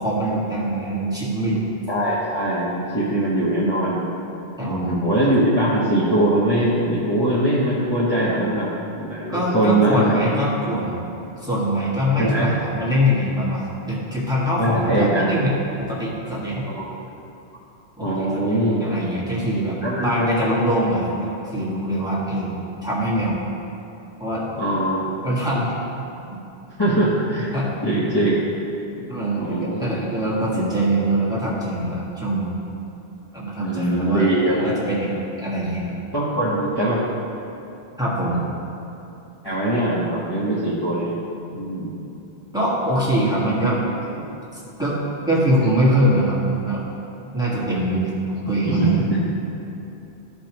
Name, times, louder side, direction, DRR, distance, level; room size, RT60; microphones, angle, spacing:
voice 1, 0.0-1.6 4.6-5.0 5.2-5.3 9.3-11.0 11.4-16.6 18.0-19.8 20.0-22.5 22.8-23.4 24.2-24.5 25.2-25.7 27.5-27.7 29.1-32.5 33.3-36.0 38.0-38.4 42.5-43.8 44.5-45.0 45.3-46.8 47.3-49.0, equal, 5° right, -8 dB, 1.7 m, -23 dB
voice 2, 1.9-4.0 4.6-10.2 12.2-12.5 14.6-15.3 16.7-16.8 18.0-18.8 19.8-20.3 24.6-25.1 26.8-27.5 27.8-28.4 29.4-30.0 33.6-34.6 36.1-37.0 39.4-41.1 41.5-42.0 44.1-44.2 48.6-49.2, right 1 dB, 25° left, -10 dB, 1.1 m, -21 dB
14.0 x 5.1 x 3.0 m, 2.8 s
omnidirectional pair, 1.1 m